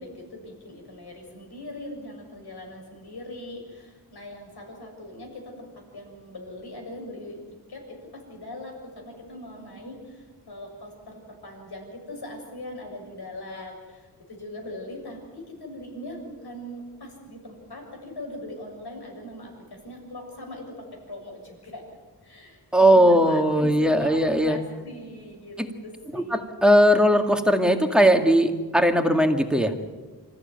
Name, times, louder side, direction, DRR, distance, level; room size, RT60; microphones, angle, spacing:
voice 1, 0.0-7.4 7.7-21.8 22.2-25.6 25.8-26.5, left 1 dB, 70° left, 2 dB, 6.9 m, -40 dB
voice 2, 22.7-24.6 25.6-25.7 26.1-29.7, equal, ahead, 4 dB, 2.2 m, -19 dB
26.5 x 14.5 x 9.2 m, 1.3 s
wide cardioid pair, 95°, 40 cm